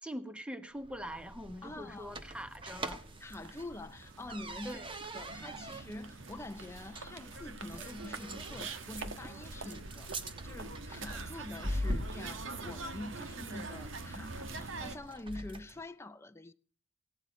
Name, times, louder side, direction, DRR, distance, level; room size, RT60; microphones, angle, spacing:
voice 1, 0.0-3.0 4.6-4.9, equal, 5° right, 1.1 m, -43 dB
sound 1, 0.8-15.8, equal, 25° right, 1.2 m, -43 dB
voice 2, 1.6-2.2 3.2-4.8 5.1-16.5, left 2 dB, 15° left, 0.6 m, -46 dB
sound 2, 2.2-2.3 2.4-15.0, right 3 dB, 80° right, 1.4 m, -45 dB
16.5 x 9.6 x 5.1 m
head